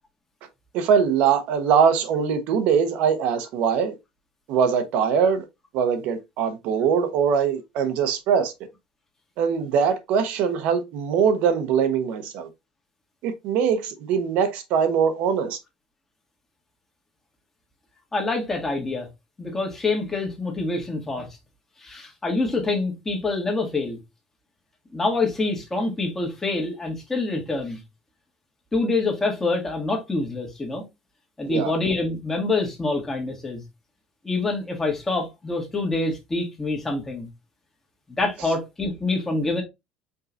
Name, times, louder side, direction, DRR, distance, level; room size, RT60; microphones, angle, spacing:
voice 1, 0.7-3.9 4.5-5.4 5.7-8.5 9.4-12.5 13.2-15.6 31.4-31.7, right 7 dB, 70° right, 1.1 m, -22 dB
voice 2, 18.1-19.1 19.4-21.3 21.8-24.0 24.9-27.8 28.7-30.8 31.4-33.6 34.2-37.3 38.2-39.6, left 3 dB, 15° left, 1.8 m, -26 dB
5.4 x 3.8 x 2.6 m
cardioid pair, 140°, 2 cm